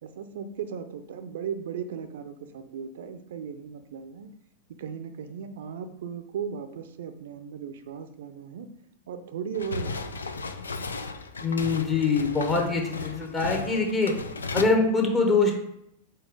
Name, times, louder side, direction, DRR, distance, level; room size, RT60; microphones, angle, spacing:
voice 1, 0.0-4.3 4.8-8.7 9.1-10.1, right 7 dB, 60° right, 9 dB, 0.6 m, -37 dB
sound 1, 9.5-14.6, left 3 dB, 75° left, 0.4 m, -35 dB
voice 2, 11.4-14.1 14.5-15.5, left 3 dB, 25° left, 1 dB, 1.1 m, -24 dB
4.6 x 4.2 x 4.8 m, 0.79 s
figure-of-eight pair, 90°, 0 cm